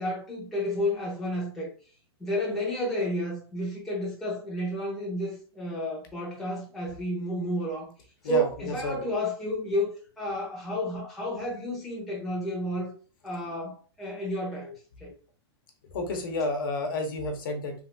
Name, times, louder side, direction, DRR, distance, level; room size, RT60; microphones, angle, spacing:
voice 1, 0.0-1.7 2.2-7.9 8.2-12.9 13.2-15.1, equal, ahead, 0.8 m, -31 dB
voice 2, 8.2-8.9 15.9-17.7, left 2 dB, 50° left, 0.8 m, -30 dB
3.3 x 2.6 x 2.6 m
supercardioid pair, 175°, 14 cm